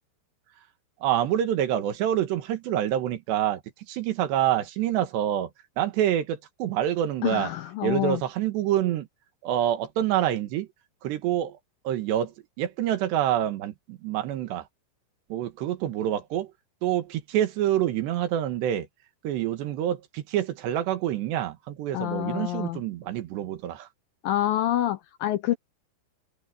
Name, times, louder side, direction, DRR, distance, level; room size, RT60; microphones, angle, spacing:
voice 1, 1.0-3.6 3.9-5.5 5.8-7.5 7.8-9.1 9.4-10.7 11.0-11.6 11.9-12.3 12.6-14.6 15.3-16.5 16.8-18.9 19.2-23.9, right 11 dB, 80° right, 3.8 m, -26 dB
voice 2, 7.2-8.2 21.9-22.8 24.2-25.6, left 13 dB, 75° left, 2.2 m, -27 dB
open air
omnidirectional pair, 4.9 m